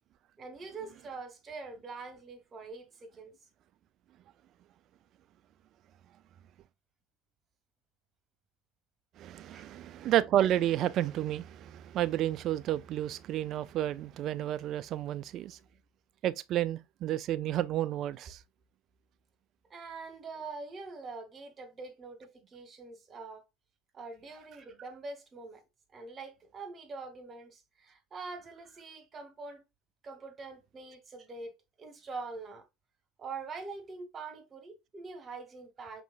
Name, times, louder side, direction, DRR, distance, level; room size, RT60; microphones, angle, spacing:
voice 1, 0.4-3.3 9.5-9.7 19.7-23.5 23.9-25.6 25.9-29.6 30.0-31.5 31.8-32.7 33.2-36.0, right 4 dB, 35° right, 1.2 m, -44 dB
voice 2, 9.2-15.6 16.2-18.4, right 12 dB, 50° right, 0.3 m, -31 dB
5.2 x 3.0 x 2.4 m
hypercardioid pair, 70°, 0 cm